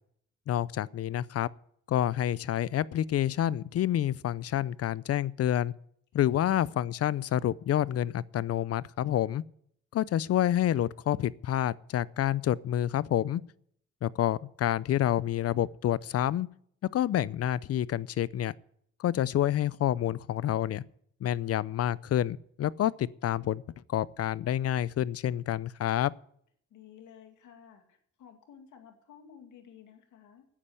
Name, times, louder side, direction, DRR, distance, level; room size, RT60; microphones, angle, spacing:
voice 1, 0.5-1.5 1.9-5.7 6.1-9.4 9.9-13.4 14.0-16.5 16.9-18.5 19.0-20.8 21.2-23.6 23.9-26.1, left 11 dB, 55° left, 0.5 m, -28 dB
voice 2, 26.7-30.5, left 8 dB, 75° left, 2.4 m, -53 dB
9.9 x 8.8 x 9.6 m
cardioid pair, 90°, 30 cm